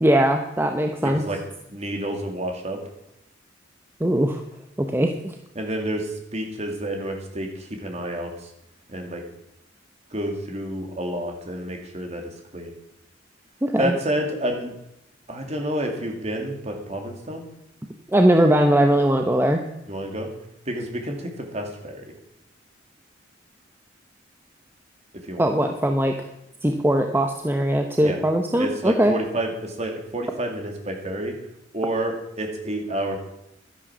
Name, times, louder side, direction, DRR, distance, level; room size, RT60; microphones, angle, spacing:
voice 1, 0.0-1.2 4.0-4.4 4.9-5.1 13.6-13.9 18.1-19.6 25.4-26.1 26.6-29.1, right 1 dB, 10° right, 4 dB, 0.8 m, -20 dB
voice 2, 1.0-1.4 1.7-2.8 5.5-8.5 8.9-9.2 10.1-12.7 13.8-14.7 15.3-17.4 19.9-20.3 20.7-22.1 25.3-25.4 28.0-28.2 28.6-31.4 31.7-33.2, right 1 dB, 35° right, 2 dB, 2.5 m, -29 dB
12.0 x 10.0 x 6.2 m, 0.86 s
head